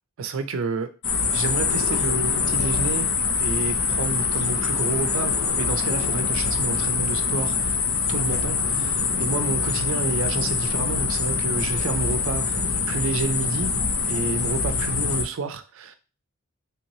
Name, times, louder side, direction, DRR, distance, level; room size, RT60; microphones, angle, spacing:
voice 1, 0.2-0.9 1.3-3.1 3.4-7.8 8.1-13.8 14.1-16.0, right 4 dB, 65° right, 10 dB, 0.4 m, -29 dB
sound 1, 1.0-15.2, left 5 dB, 85° left, 0.6 m, -24 dB
3.3 x 3.0 x 2.7 m, 0.33 s
head